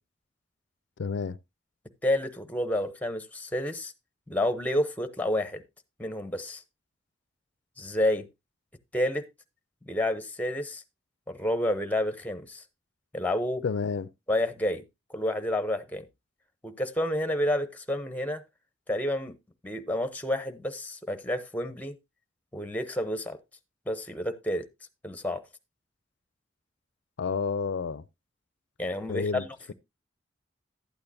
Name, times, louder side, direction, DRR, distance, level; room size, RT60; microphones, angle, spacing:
voice 1, 1.0-1.4 13.6-14.1 27.2-28.0 29.1-29.7, left 5 dB, 70° left, 0.4 m, -30 dB
voice 2, 2.0-3.9 4.3-5.6 6.0-6.6 7.8-8.3 8.9-9.2 9.9-10.8 11.3-12.6 13.1-13.6 14.3-14.8 15.1-16.0 16.6-18.4 18.9-19.3 19.6-22.0 22.5-23.4 23.9-24.6 25.0-25.4 28.8-29.7, left 1 dB, 10° left, 0.7 m, -29 dB
12.0 x 8.8 x 2.7 m
head